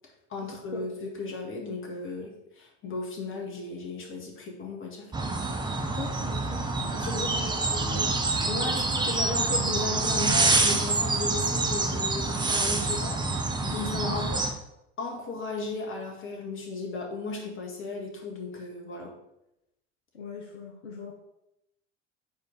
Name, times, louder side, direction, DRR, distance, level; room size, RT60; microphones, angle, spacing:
voice 1, 0.3-5.1 7.0-8.2 8.4-14.4 15.0-19.1, left 3 dB, 35° left, 0 dB, 1.9 m, -35 dB
sound 1, 5.1-14.5, right 3 dB, 10° right, 0.8 m, -26 dB
voice 2, 6.0-7.5 7.9-8.0 14.0-14.2 20.1-21.1, left 4 dB, 70° left, 1 dB, 1.0 m, -41 dB
5.3 x 4.4 x 6.2 m, 0.85 s
figure-of-eight pair, 75°, 37 cm